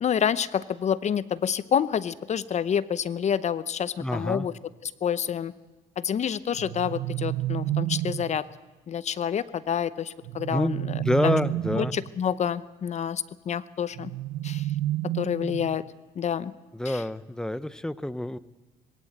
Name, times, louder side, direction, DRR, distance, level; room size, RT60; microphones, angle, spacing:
voice 1, 0.0-4.5 4.8-5.5 6.0-8.4 8.9-11.4 11.7-14.1 14.4-14.7 15.1-15.8 16.2-16.5 16.8-17.0, left 8 dB, 40° left, 17 dB, 0.8 m, -28 dB
voice 2, 4.0-4.5 10.5-11.9 16.7-18.4, left 1 dB, 5° left, 17 dB, 0.8 m, -27 dB
sound 1, 6.5-8.4 10.2-12.1 13.9-15.9, right 14 dB, 85° right, 0.8 m, -30 dB
20.5 x 17.5 x 8.8 m, 1.2 s
cardioid pair, 110°, 17 cm